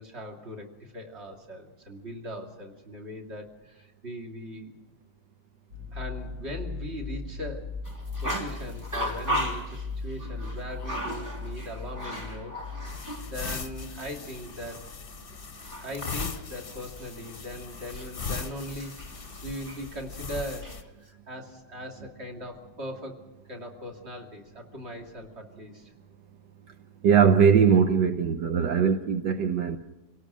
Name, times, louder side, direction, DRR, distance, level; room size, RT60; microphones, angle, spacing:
voice 1, 0.0-4.8 5.9-7.8 8.2-14.9 15.8-23.2 23.5-25.9, equal, 35° right, 3.1 m, -40 dB
sound 1, 5.7-14.0, left 3 dB, 60° right, 6.5 m, -38 dB
sound 2, 7.9-13.3 13.6-13.7 15.2-19.9 20.4-20.8, equal, 10° right, 3.1 m, -36 dB
sound 3, 12.9-20.8, left 5 dB, 40° left, 1.1 m, -39 dB
voice 2, 27.0-29.8, right 7 dB, 75° right, 1.5 m, -21 dB
28.0 x 18.0 x 6.3 m
omnidirectional pair, 1.8 m